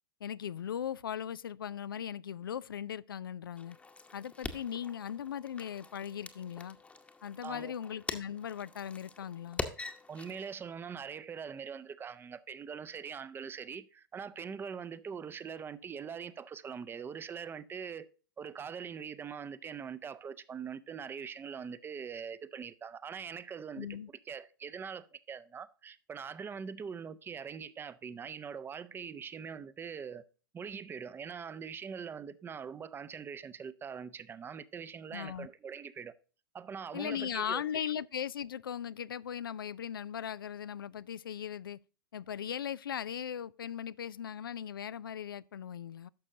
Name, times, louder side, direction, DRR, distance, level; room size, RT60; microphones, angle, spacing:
voice 1, 0.2-3.8 4.1-6.8 7.2-9.6 23.8-24.1 35.1-35.5 36.9-41.8 42.1-46.1, left 9 dB, 80° left, 0.4 m, -38 dB
sound 1, 3.6-10.6, left 3 dB, 10° left, 1.0 m, -44 dB
voice 2, 7.4-7.7 10.1-18.1 18.4-30.2 30.5-36.2 36.5-37.6, right 6 dB, 20° right, 0.6 m, -43 dB
11.5 x 6.4 x 2.7 m
hypercardioid pair, 100°, 12 cm